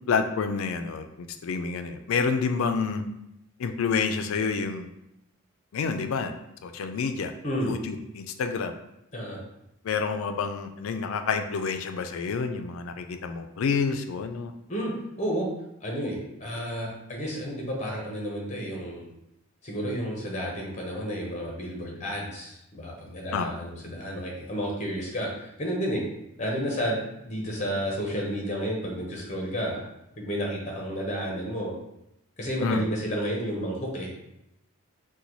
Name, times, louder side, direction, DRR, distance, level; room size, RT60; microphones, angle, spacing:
voice 1, 0.1-3.0 3.6-4.9 5.7-6.3 6.6-7.3 7.6-8.7 9.8-14.5 23.3-23.5 32.6-32.9, left 5 dB, 70° left, 7 dB, 0.3 m, -28 dB
voice 2, 7.4-7.8 9.1-9.4 14.7-15.5 15.8-19.0 19.6-26.0 26.4-29.8 30.2-31.7 32.4-34.3, equal, 35° left, -1 dB, 0.7 m, -31 dB
3.9 x 2.2 x 3.0 m, 0.83 s
head